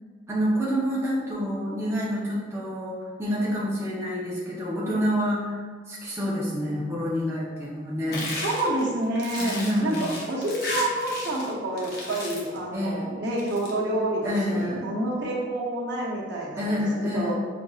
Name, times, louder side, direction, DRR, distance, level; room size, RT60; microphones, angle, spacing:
voice 1, 0.3-5.6 5.9-8.3 9.4-10.0 12.7-13.1 14.2-14.9 16.6-17.3, equal, 15° right, -7 dB, 0.7 m, -27 dB
sound 1, 8.1-11.5 11.8-12.6 13.3-13.7, left 2 dB, 55° left, 0.7 m, -34 dB
voice 2, 8.4-16.7 17.1-17.3, right 1 dB, 70° right, -4 dB, 0.8 m, -28 dB
5.1 x 2.6 x 2.4 m, 1.5 s
head